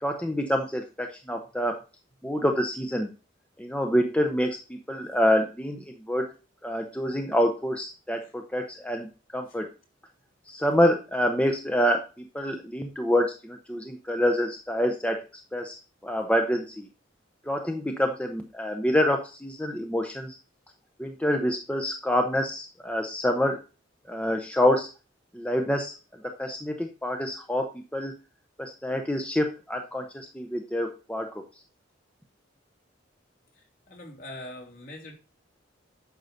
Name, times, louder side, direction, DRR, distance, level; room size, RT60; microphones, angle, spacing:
voice 1, 0.0-1.8 2.2-3.1 3.6-6.3 6.6-9.7 10.5-15.2 15.5-15.8 16.0-16.9 17.5-20.4 21.0-23.6 24.1-24.9 25.3-25.9 26.2-28.1 28.6-31.3, equal, 5° left, 3 dB, 0.8 m, -27 dB
voice 2, 33.6-35.1, left 1 dB, 50° left, 0 dB, 3.0 m, -43 dB
9.5 x 4.0 x 6.6 m, 0.32 s
head